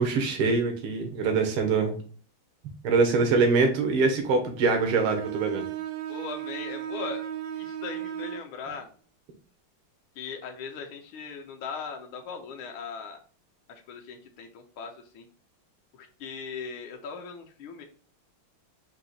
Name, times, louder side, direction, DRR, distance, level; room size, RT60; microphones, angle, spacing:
voice 1, 0.0-2.0 2.8-5.7, right 4 dB, 90° right, 4 dB, 1.8 m, -24 dB
Bowed string instrument, 4.7-8.5, right 11 dB, 70° right, 1.0 m, -35 dB
voice 2, 6.1-7.2 7.6-8.9 10.2-13.2 13.7-15.3 15.9-17.8, left 5 dB, 80° left, 3 dB, 1.5 m, -39 dB
4.9 x 2.8 x 3.9 m, 0.43 s
omnidirectional pair, 2.3 m